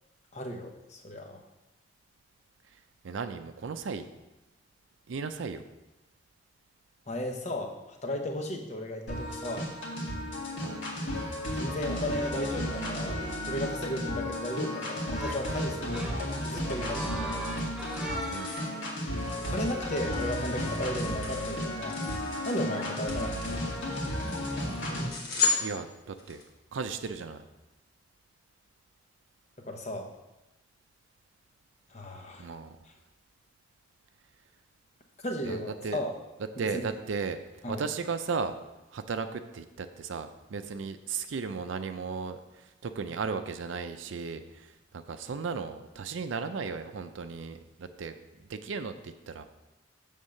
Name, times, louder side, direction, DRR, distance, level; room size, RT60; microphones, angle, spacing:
voice 1, 0.3-1.4 7.1-7.7 8.0-9.7 11.6-13.2 13.5-16.1 16.4-17.4 19.5-22.0 22.4-23.4 29.6-30.1 31.9-32.5 35.2-36.1 36.6-36.8 37.6-37.8, left 1 dB, 35° left, 2 dB, 0.9 m, -35 dB
voice 2, 3.0-4.1 5.1-5.6 10.6-10.9 18.3-18.6 25.6-26.4 26.7-27.4 32.4-32.8 35.4-36.0 36.6-37.4 37.7-38.5 38.9-48.2 48.5-49.4, right 5 dB, 85° right, 9 dB, 0.5 m, -35 dB
sound 1, 9.1-25.1, left 1 dB, 80° left, 1.9 m, -34 dB
sound 2, 15.1-15.5 15.9-18.9 21.1-21.2 22.5-22.8, right 1 dB, 5° right, 0.9 m, -39 dB
sound 3, 17.2-26.4, left 4 dB, 55° left, 1.5 m, -37 dB
7.2 x 3.6 x 6.4 m, 0.99 s
head